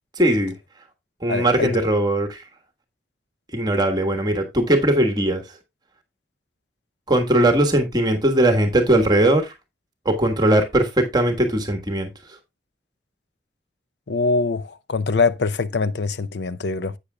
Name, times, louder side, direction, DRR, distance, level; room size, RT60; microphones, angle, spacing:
voice 1, 0.2-0.5 1.2-2.4 3.5-5.4 7.1-9.5 10.0-12.1, right 1 dB, 25° right, 1.4 m, -19 dB
voice 2, 1.3-1.7 14.1-16.9, left 4 dB, 80° left, 0.6 m, -23 dB
11.5 x 8.3 x 2.3 m
head